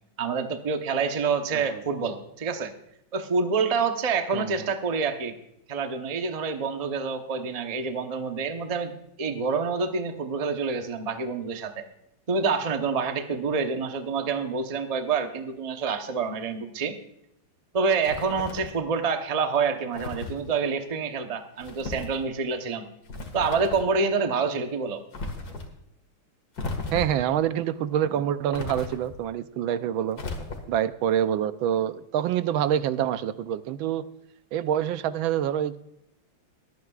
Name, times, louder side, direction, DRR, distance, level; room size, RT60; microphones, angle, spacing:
voice 1, 0.2-2.7 3.1-5.3 5.7-11.8 12.3-17.0 17.7-22.8 23.3-25.0, right 5 dB, 35° right, 6 dB, 0.6 m, -27 dB
sound 1, 18.0-18.8 19.9-20.4 21.6-22.2 23.0-23.9 25.1-25.7 26.5-27.3 28.5-29.2 30.1-30.8, left 3 dB, 50° left, 2.3 m, -35 dB
voice 2, 26.9-30.2 30.7-34.0 34.5-35.8, right 10 dB, 80° right, 13 dB, 1.4 m, -26 dB
23.0 x 9.5 x 2.4 m, 0.81 s
omnidirectional pair, 2.2 m